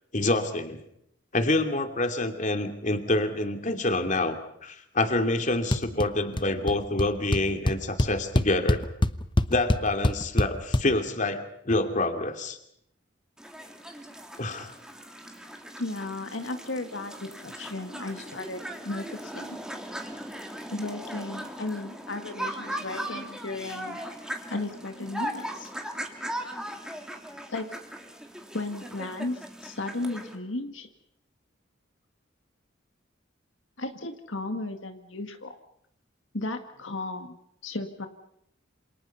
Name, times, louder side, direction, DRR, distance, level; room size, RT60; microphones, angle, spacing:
voice 1, 0.1-0.8 1.3-8.8 9.5-12.6 14.4-14.7 19.7-19.8 23.1-23.2, left 2 dB, 40° left, 6 dB, 2.8 m, -27 dB
sound 1, 5.7-6.1 6.3-6.7 7.0-7.1 7.3-10.8, left 1 dB, 25° left, 1.0 m, -24 dB
sound 2, 13.4-30.4, right 1 dB, 5° right, 3.1 m, -39 dB
voice 2, 15.8-19.6 20.7-24.0 24.5-25.7 27.5-27.7 28.5-30.9 33.8-35.6 36.3-37.4 37.6-38.1, left 2 dB, 75° left, 6 dB, 2.0 m, -35 dB
28.0 x 27.5 x 5.7 m, 0.74 s
head